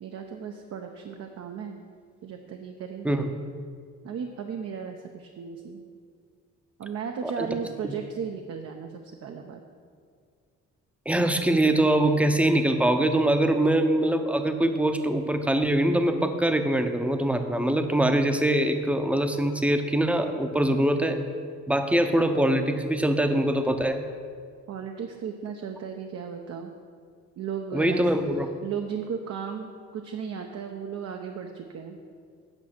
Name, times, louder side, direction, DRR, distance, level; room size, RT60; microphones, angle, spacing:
voice 1, 0.0-1.8 2.2-3.2 4.0-5.8 6.8-9.6 24.7-26.7 27.4-28.1 28.6-32.0, right 7 dB, 55° right, 4 dB, 0.7 m, -35 dB
voice 2, 11.1-21.2 21.7-24.0 27.7-28.5, right 1 dB, 5° right, 7 dB, 0.7 m, -23 dB
8.9 x 5.4 x 5.9 m, 2.1 s
cardioid pair, 90°, 30 cm